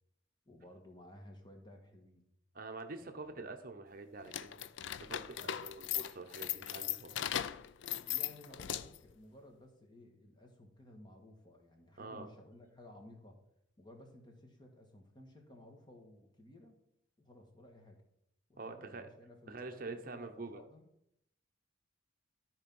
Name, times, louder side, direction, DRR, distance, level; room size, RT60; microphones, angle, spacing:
voice 1, 0.4-2.3 2.9-3.5 5.3-5.6 7.9-13.4 13.8-16.8 17.2-18.0 18.5-20.9, left 1 dB, 20° left, 2 dB, 1.5 m, -56 dB
voice 2, 2.5-4.7 5.0-7.2 12.0-12.3 18.6-19.1 19.5-20.6, right 3 dB, 45° right, 6 dB, 0.8 m, -46 dB
sound 1, 4.2-9.1, left 11 dB, 65° left, 0.4 m, -38 dB
13.0 x 4.5 x 5.4 m, 0.78 s
head